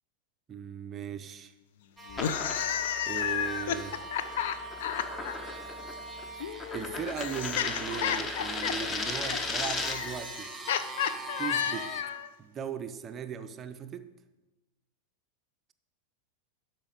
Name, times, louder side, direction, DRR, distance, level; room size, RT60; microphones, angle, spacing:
voice 1, 0.5-1.5 3.0-4.0 6.7-10.5 11.4-11.9 12.4-14.1, right 8 dB, 25° right, 0.4 m, -38 dB
sound 1, 2.0-12.0, right 2 dB, 10° right, 1.0 m, -43 dB
sound 2, 2.1-5.3 6.4-12.3, left 9 dB, 55° left, 0.4 m, -32 dB
sound 3, 2.1-10.2, left 3 dB, 20° left, 0.9 m, -37 dB
12.0 x 4.5 x 4.9 m
figure-of-eight pair, 90°, 0 cm